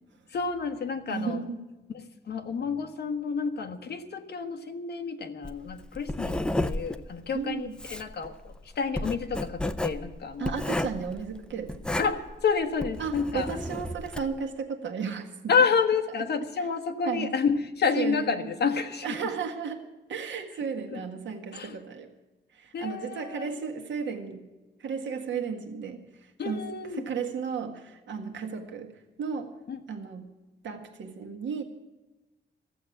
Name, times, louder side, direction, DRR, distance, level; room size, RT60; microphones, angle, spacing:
voice 1, 0.3-1.4 1.9-10.6 12.0-13.6 15.5-19.2 20.9-21.0 21.5-21.8 22.7-23.6 26.4-27.1 29.7-29.8, left 5 dB, 55° left, 6 dB, 1.3 m, -29 dB
voice 2, 1.1-1.6 7.3-7.7 10.4-12.1 13.0-15.5 17.0-17.3 17.9-18.5 19.0-22.1 22.5-24.4 24.8-26.0 26.4-26.6 27.0-29.6 29.9-30.3 30.6-31.6, right 6 dB, 70° right, 4 dB, 1.7 m, -34 dB
Writing, 5.4-14.4, left 1 dB, 5° left, 0.4 m, -33 dB
15.0 x 7.8 x 9.9 m, 1.1 s
wide cardioid pair, 175°, 20 cm